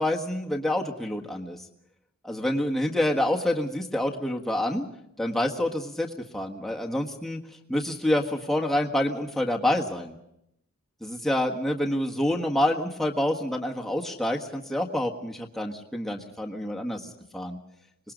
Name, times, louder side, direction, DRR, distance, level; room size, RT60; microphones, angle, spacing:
voice 1, 0.0-1.6 2.2-4.9 5.2-7.4 7.7-10.2 11.0-17.1 17.3-17.6, left 1 dB, ahead, -1 dB, 1.6 m, -27 dB
25.5 x 20.0 x 5.2 m, 0.78 s
head